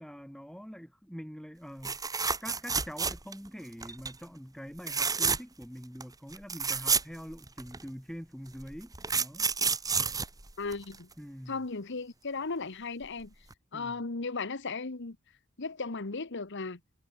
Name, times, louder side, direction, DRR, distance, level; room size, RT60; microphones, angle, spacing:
voice 1, 0.0-9.5 11.2-11.6 13.7-14.0, equal, 5° left, 5.0 m, -45 dB
sound 1, 1.8-3.5 3.8-4.1 4.8-5.6 6.0-6.1 6.3-7.8 8.6-11.1 13.0-13.2 13.5-13.6, right 5 dB, 20° right, 1.9 m, -30 dB
voice 2, 10.6-11.1 11.5-13.3 13.7-15.2 15.6-16.8, left 4 dB, 60° left, 1.3 m, -36 dB
head